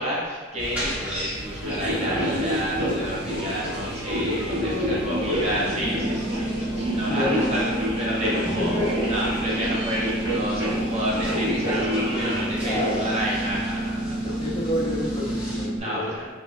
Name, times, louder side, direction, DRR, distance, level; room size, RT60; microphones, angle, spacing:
voice 1, 0.0-14.4 15.7-16.3, equal, 35° right, -5 dB, 0.9 m, -30 dB
sound 1, 0.6-15.7, equal, 10° right, 1.5 m, -36 dB
sound 2, 1.6-12.9, equal, 75° right, 1.4 m, -28 dB
voice 2, 4.4-5.5 6.2-6.7 7.1-7.6 8.3-9.1 12.6-13.1 14.2-16.3, left 1 dB, 25° left, -5 dB, 0.7 m, -30 dB
sound 3, 5.8-15.8, right 1 dB, 50° right, 1.3 m, -30 dB
5.2 x 3.1 x 2.2 m, 1.4 s
head